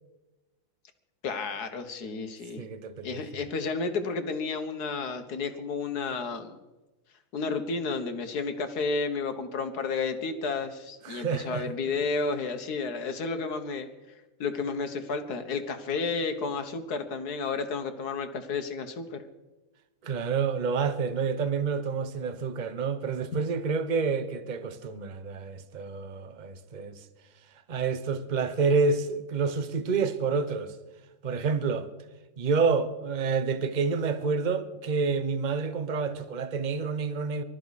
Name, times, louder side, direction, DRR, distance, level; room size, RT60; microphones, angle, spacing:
voice 1, 1.2-2.6 3.0-6.6 7.3-13.9 14.4-19.2, left 4 dB, 55° left, 1.7 m, -31 dB
voice 2, 2.6-3.4 11.0-11.7 20.0-27.0 27.7-30.8 31.2-31.9 32.4-37.4, right 5 dB, 40° right, 0.7 m, -28 dB
24.5 x 13.0 x 4.1 m
omnidirectional pair, 2.1 m